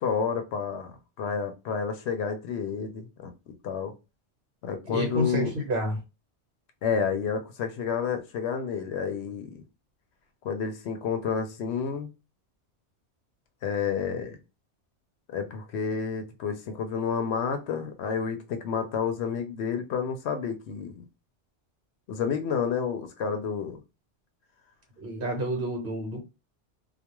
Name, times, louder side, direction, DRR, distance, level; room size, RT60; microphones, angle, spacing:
voice 1, 0.0-3.3 3.6-3.9 4.6-5.5 6.8-9.6 10.4-12.1 13.6-14.4 15.3-21.0 22.1-23.8, left 6 dB, 75° left, 0.8 m, -30 dB
voice 2, 4.9-6.0 25.0-26.2, right 1 dB, 55° right, 1.0 m, -29 dB
2.3 x 2.2 x 2.9 m
omnidirectional pair, 1.2 m